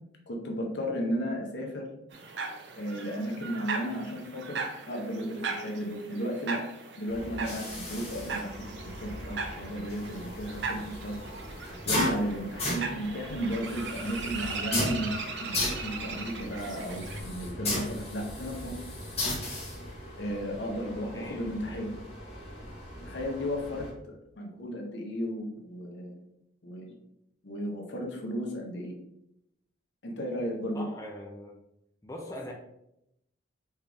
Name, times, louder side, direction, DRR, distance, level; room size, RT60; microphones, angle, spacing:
voice 1, 0.3-1.9 2.7-6.6 7.0-8.6 8.8-11.2 11.8-18.8 20.2-21.9 23.0-26.2 26.6-26.9 27.4-28.9 30.0-30.8, equal, 70° left, 1 dB, 0.9 m, -34 dB
sound 1, 2.1-17.2, right 4 dB, 65° right, 0.7 m, -38 dB
sound 2, 7.1-23.9, left 1 dB, 35° left, 1.6 m, -36 dB
voice 2, 21.0-21.4 21.7-21.8 30.7-31.6 32.0-32.5, left 1 dB, 15° left, -1 dB, 0.5 m, -42 dB
4.4 x 3.5 x 3.4 m, 0.81 s
head